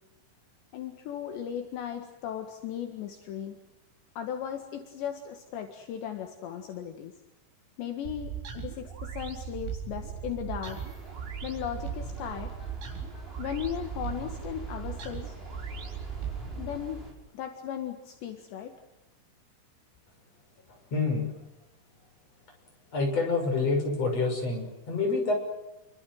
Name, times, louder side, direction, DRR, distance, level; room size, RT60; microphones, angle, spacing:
voice 1, 0.7-3.6 4.2-7.1 7.8-10.8 11.4-12.5 13.4-15.3 16.6-17.0 17.3-18.7, left 9 dB, 70° left, 4 dB, 4.0 m, -36 dB
sound 1, 8.0-16.8, right 8 dB, 80° right, 6.4 m, -38 dB
sound 2, 10.6-17.1, right 1 dB, 10° right, 5.8 m, -44 dB
voice 2, 20.9-21.3 22.9-25.3, left 3 dB, 35° left, 2 dB, 7.3 m, -27 dB
29.0 x 24.5 x 7.8 m, 1.0 s
omnidirectional pair, 5.4 m